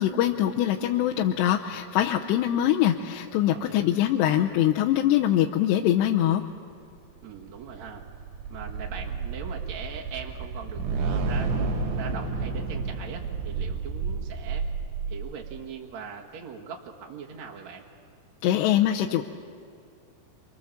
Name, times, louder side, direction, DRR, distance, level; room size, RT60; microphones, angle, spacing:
voice 1, 0.0-6.4 18.4-19.2, left 12 dB, 80° left, 1 dB, 2.9 m, -23 dB
voice 2, 3.5-3.9 7.2-8.1 8.5-11.6 12.0-14.7 15.1-17.9, right 6 dB, 50° right, -2 dB, 2.3 m, -41 dB
sound 1, 7.2-15.6, right 4 dB, 75° right, 4.1 m, -31 dB
28.5 x 25.5 x 7.3 m, 2.3 s
omnidirectional pair, 5.0 m